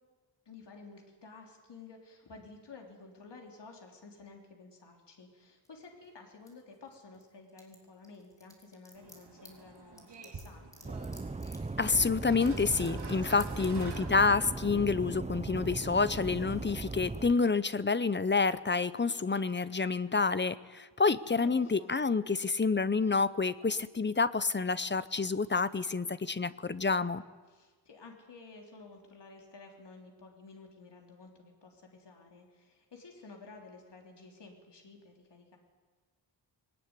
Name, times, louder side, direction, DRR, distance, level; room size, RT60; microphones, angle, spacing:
voice 1, 0.5-11.0 13.3-13.4 13.7-13.8 21.4-21.9 27.5-35.6, left 3 dB, 65° left, 2 dB, 3.4 m, -52 dB
sound 1, 5.6-7.2 7.5-13.1 13.4-13.8, equal, 10° left, 3.8 m, -54 dB
sound 2, 8.9-14.7, right 4 dB, 65° right, 3.4 m, -49 dB
sound 3, 10.8-17.3, right 3 dB, 15° right, 0.7 m, -38 dB
voice 2, 11.8-27.2, left 4 dB, 25° left, 15 dB, 0.7 m, -28 dB
21.5 x 19.0 x 9.7 m, 1.4 s
wide cardioid pair, 150°, 44 cm